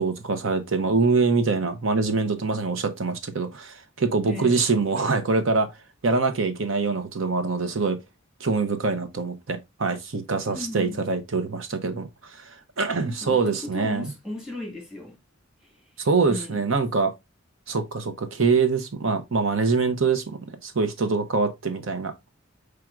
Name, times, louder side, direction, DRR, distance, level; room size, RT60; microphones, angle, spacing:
voice 1, 0.0-5.7 6.0-8.0 8.4-14.1 16.0-17.1 17.7-22.1, right 4 dB, 75° right, 0.8 m, -24 dB
voice 2, 4.3-4.6 10.5-11.0 13.1-15.2 15.6-15.7 16.3-16.6, left 1 dB, 5° right, 1.7 m, -36 dB
4.9 x 4.5 x 2.4 m
head